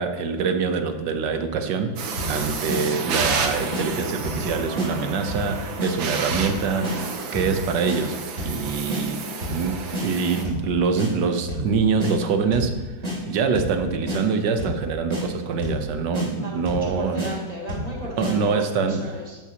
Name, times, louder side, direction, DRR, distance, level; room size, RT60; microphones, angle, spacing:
voice 1, 0.0-8.2 8.4-9.2 9.5-12.8 13.3-17.3 18.2-19.1, right 5 dB, 65° right, 7 dB, 1.5 m, -25 dB
sound 1, 2.0-10.4, right 5 dB, 80° right, 1.8 m, -31 dB
sound 2, 2.2-2.4 2.7-2.8 3.2-3.4 3.7-3.8 4.2-4.5 4.8-4.9 5.3-5.5 5.8-5.9 6.3-6.5 6.8-7.0 7.3-7.6 7.9-8.0 8.4-8.6 8.9-9.0 9.4-9.6 9.9-10.1 10.4-10.7 11.0-11.1 11.5-11.7 12.0-12.1 12.5-12.7 13.0-13.2 13.5-13.8 14.1-14.2 14.6-14.8 15.1-15.2 15.6-15.8 16.1-16.3 16.7-16.9 17.2-17.3 17.7-17.9 18.2-18.3, left 1 dB, 40° right, 3.5 m, -29 dB
voice 2, 16.3-19.4, right 1 dB, 20° left, -4 dB, 1.6 m, -36 dB
12.5 x 11.0 x 3.0 m, 1.3 s
omnidirectional pair, 2.1 m